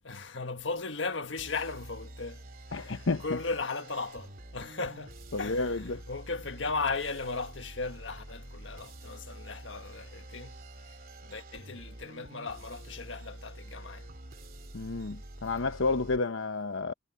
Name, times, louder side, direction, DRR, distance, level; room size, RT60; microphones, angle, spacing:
voice 1, 0.0-2.4 2.7-10.6 11.2-14.1, left 4 dB, 70° left, 1.6 m, -36 dB
sound 1, 1.4-16.2, right 1 dB, 50° right, 2.9 m, -47 dB
voice 2, 2.7-3.4 5.3-6.0 14.7-16.9, left 3 dB, 90° left, 0.9 m, -31 dB
head